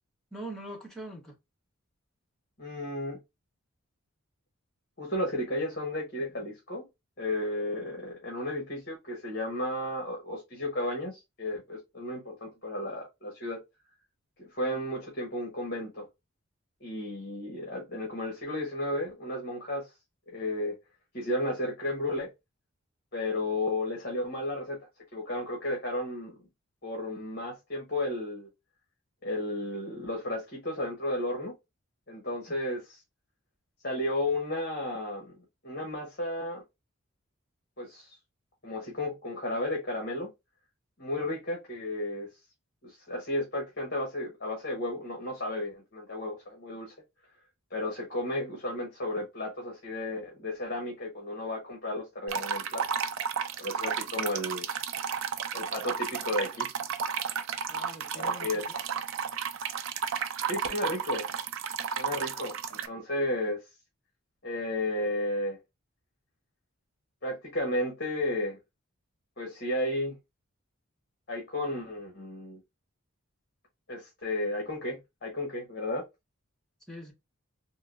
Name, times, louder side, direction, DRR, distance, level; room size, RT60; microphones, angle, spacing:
voice 1, 0.3-1.3 57.7-58.5 76.9-77.1, right 1 dB, 5° left, 1.0 m, -42 dB
voice 2, 2.6-3.2 5.0-6.8 7.2-13.6 14.4-16.1 16.8-19.9 20.3-20.7 21.1-22.3 23.1-24.8 25.1-26.4 26.8-28.5 29.2-31.5 32.1-33.0 33.8-35.3 35.6-36.6 37.8-38.2 38.6-40.3 41.0-42.3 42.8-46.9 47.7-52.8 53.6-54.7 55.5-56.7 58.1-58.8 60.5-61.3 62.0-63.6 64.4-65.6 67.2-68.6 69.4-70.2 71.3-72.6 73.9-76.0, left 1 dB, 45° left, 1.2 m, -33 dB
sound 1, 52.3-62.9, right 7 dB, 65° right, 0.4 m, -33 dB
3.7 x 2.6 x 2.4 m
head